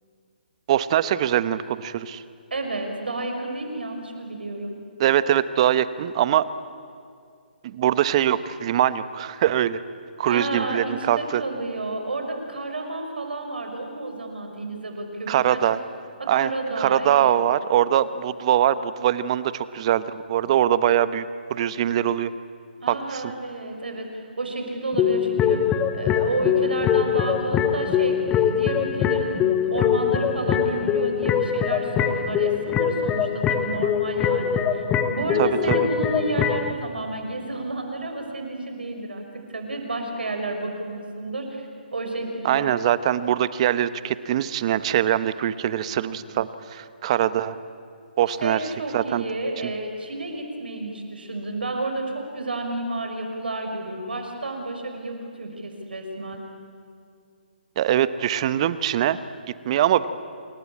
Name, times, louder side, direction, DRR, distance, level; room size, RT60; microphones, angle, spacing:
voice 1, 0.7-2.2 5.0-6.4 7.6-9.8 10.2-11.4 15.3-15.8 16.3-16.5 16.8-21.2 21.5-22.3 22.9-23.2 35.4-35.9 42.4-47.6 48.2-48.6 48.9-49.2 57.8-59.2 59.6-60.1, right 11 dB, 40° right, 15 dB, 1.1 m, -22 dB
voice 2, 2.5-4.8 10.2-15.6 16.2-17.4 22.8-25.6 25.9-34.8 35.1-41.6 41.9-42.7 46.2-46.3 48.4-56.4, right 2 dB, 80° right, 4 dB, 5.7 m, -31 dB
sound 1, 24.9-36.7, left 8 dB, 15° left, 1.0 m, -23 dB
28.0 x 22.0 x 8.7 m, 2.3 s
figure-of-eight pair, 145°, 5 cm